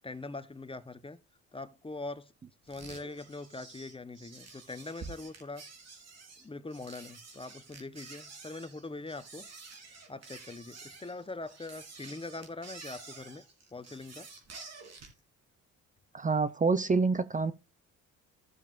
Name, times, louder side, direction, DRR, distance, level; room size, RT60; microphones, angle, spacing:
voice 1, 0.0-1.2 1.5-2.3 2.7-5.6 6.4-9.5 10.1-13.4 13.7-14.3, left 3 dB, 20° left, 0.9 m, -42 dB
sound 1, 2.7-15.2, right 4 dB, 60° right, 3.9 m, -49 dB
voice 2, 16.1-17.5, right 4 dB, 25° right, 0.7 m, -27 dB
15.5 x 7.3 x 2.5 m
cardioid pair, 90°, 30 cm